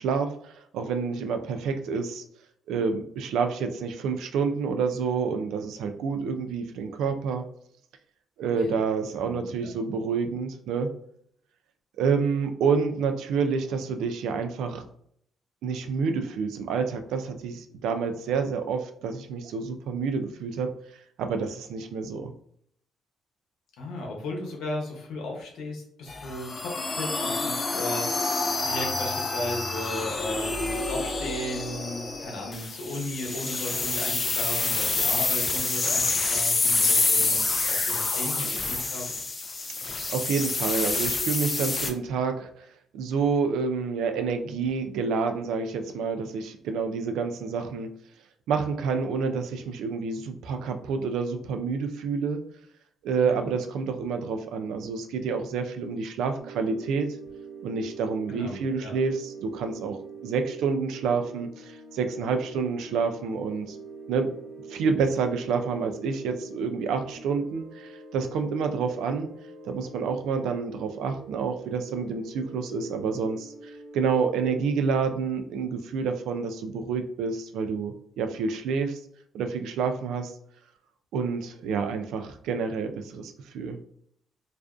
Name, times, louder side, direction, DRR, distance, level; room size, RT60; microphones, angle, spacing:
voice 1, 0.0-2.2 2.7-7.4 8.4-10.9 12.0-14.8 15.6-20.7 21.2-22.3 39.8-42.7 42.9-47.9 48.5-52.4 53.0-57.1 57.6-63.8 64.1-64.3 64.7-69.3 69.6-79.0 79.3-80.3 81.1-83.8, right 5 dB, 85° right, 7 dB, 0.3 m, -28 dB
voice 2, 9.2-9.7 23.8-39.1 53.2-53.5 58.3-58.9, left 1 dB, 85° left, -1 dB, 0.8 m, -36 dB
sound 1, 26.1-41.9, left 3 dB, 35° left, 0.4 m, -27 dB
sound 2, 56.4-74.6, right 4 dB, 55° right, 1.1 m, -44 dB
2.4 x 2.2 x 2.4 m, 0.67 s
cardioid pair, 90°, 0 cm